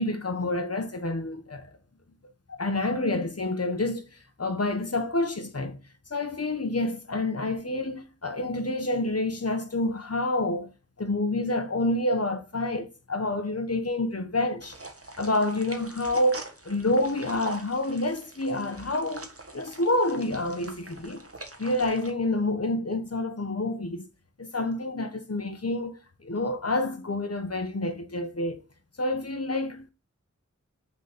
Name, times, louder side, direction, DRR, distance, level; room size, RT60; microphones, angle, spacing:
voice 1, 0.0-1.7 2.5-4.1 4.4-5.8 6.1-10.7 11.0-14.8 15.2-19.3 19.5-21.2 21.6-24.1 24.4-28.6 29.0-29.9, left 2 dB, 50° left, 1.2 m, -28 dB
sound 1, 14.6-22.1, right 2 dB, 50° right, 1.5 m, -43 dB
6.1 x 4.1 x 6.0 m
wide cardioid pair, 45°, 30 cm